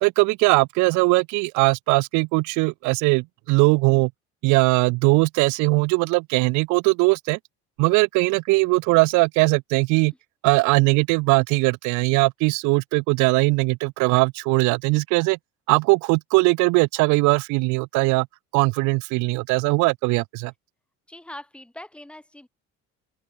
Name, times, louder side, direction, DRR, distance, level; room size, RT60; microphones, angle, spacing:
voice 1, 0.0-4.1 4.4-7.4 7.8-10.1 10.4-15.4 15.7-18.3 18.5-20.5, right 27 dB, 80° right, 0.7 m, -20 dB
voice 2, 21.1-22.5, left 1 dB, 5° left, 8.0 m, -42 dB
open air
cardioid pair, 175°, 29 cm